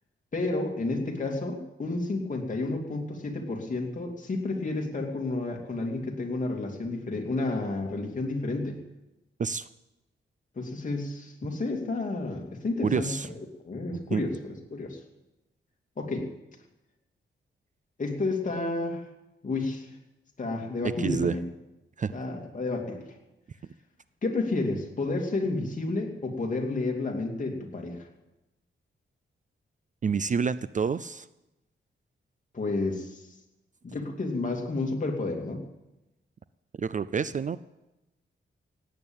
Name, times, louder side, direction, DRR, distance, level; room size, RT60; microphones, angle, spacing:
voice 1, 0.3-8.8 10.6-13.3 13.6-15.0 16.0-16.3 18.0-19.0 19.4-19.9 20.4-21.4 22.1-23.1 24.2-28.1 32.5-33.3 33.8-35.6, left 2 dB, 40° left, 1 dB, 2.7 m, -31 dB
voice 2, 12.8-13.3 14.1-14.2 21.0-21.3 22.0-22.1 30.0-31.3 36.8-37.6, right 6 dB, 40° right, 15 dB, 0.4 m, -28 dB
17.5 x 8.9 x 8.9 m, 0.98 s
wide cardioid pair, 120°, 20 cm